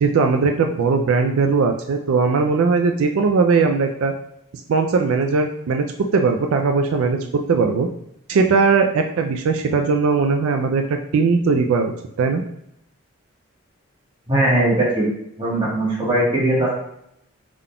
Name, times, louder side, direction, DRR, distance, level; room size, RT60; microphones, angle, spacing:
voice 1, 0.0-4.1 4.7-5.8 6.1-7.2 7.5-7.9 8.3-12.4, right 4 dB, 80° right, 4 dB, 0.3 m, -19 dB
voice 2, 14.3-15.0 15.4-16.7, right 1 dB, 25° right, -6 dB, 1.2 m, -19 dB
3.7 x 3.6 x 2.2 m, 0.77 s
head